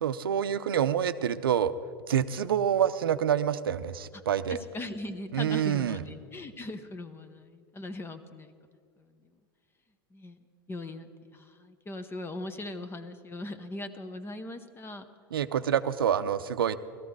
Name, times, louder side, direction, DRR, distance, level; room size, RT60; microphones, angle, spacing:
voice 1, 0.0-1.7 2.1-4.6 5.3-6.0 15.3-16.8, right 9 dB, 85° right, 13 dB, 0.6 m, -27 dB
voice 2, 4.5-8.5 10.1-10.4 10.7-15.0, left 2 dB, 20° left, 10 dB, 0.9 m, -40 dB
17.0 x 13.5 x 4.7 m, 2.2 s
hypercardioid pair, 95°, 12 cm